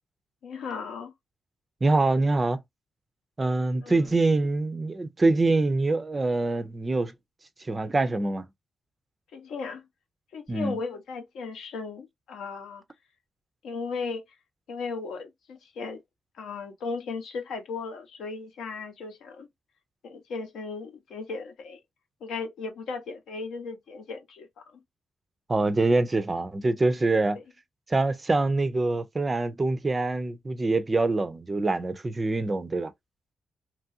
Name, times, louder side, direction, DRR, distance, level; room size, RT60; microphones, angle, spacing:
voice 1, 0.4-1.1 3.8-4.2 9.3-9.9 10.3-12.8 13.6-14.2 14.7-16.0 16.4-19.5 20.0-21.8 22.2-24.5, left 4 dB, 85° left, 0.8 m, -36 dB
voice 2, 1.8-2.6 3.4-7.1 7.6-8.5 10.5-10.8 25.5-27.4 27.9-32.9, right 2 dB, 20° right, 0.3 m, -25 dB
2.9 x 2.4 x 2.6 m
wide cardioid pair, 165°, 0 cm